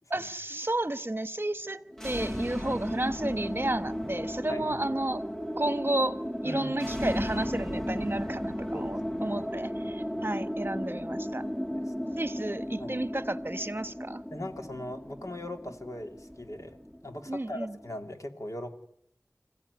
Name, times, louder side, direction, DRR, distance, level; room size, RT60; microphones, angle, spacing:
voice 1, 0.1-5.3 5.6-11.5 12.2-14.2 17.3-17.8, right 1 dB, 35° right, 1.1 m, -32 dB
sound 1, 1.9-18.0, equal, 10° left, 1.6 m, -35 dB
voice 2, 6.4-7.0 8.7-8.9 9.2-9.4 10.1-10.3 11.7-12.2 12.8-12.9 14.3-18.8, left 1 dB, 65° left, 2.8 m, -40 dB
26.5 x 16.0 x 9.7 m
wide cardioid pair, 45°, 6 cm